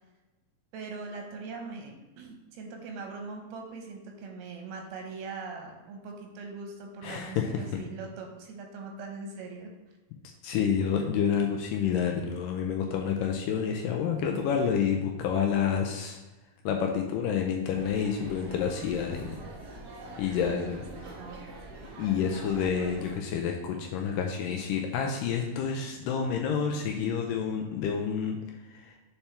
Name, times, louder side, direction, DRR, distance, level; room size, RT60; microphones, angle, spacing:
voice 1, 0.7-9.7 20.4-21.7, right 4 dB, 90° right, 2 dB, 2.9 m, -41 dB
voice 2, 7.0-7.6 10.4-16.2 16.7-19.4 20.2-20.9 22.0-28.4 28.7-28.9, left 7 dB, 80° left, 2 dB, 2.0 m, -29 dB
sound 1, 17.7-23.2, right 2 dB, 65° right, 2.6 m, -44 dB
6.9 x 4.3 x 3.3 m, 1.1 s
omnidirectional pair, 4.2 m